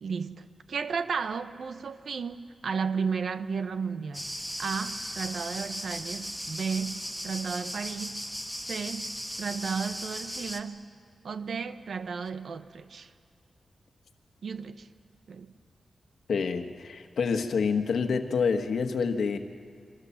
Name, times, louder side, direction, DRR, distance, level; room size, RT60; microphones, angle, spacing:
voice 1, 0.0-4.2 4.6-8.2 8.6-10.9 11.2-13.1 14.4-14.9 15.3-15.5, right 5 dB, 75° right, 1.1 m, -34 dB
sound 1, 4.1-10.6, equal, 5° right, 1.6 m, -37 dB
voice 2, 16.3-19.4, left 5 dB, 90° left, 1.5 m, -27 dB
28.5 x 24.0 x 7.2 m
wide cardioid pair, 120°, 0 cm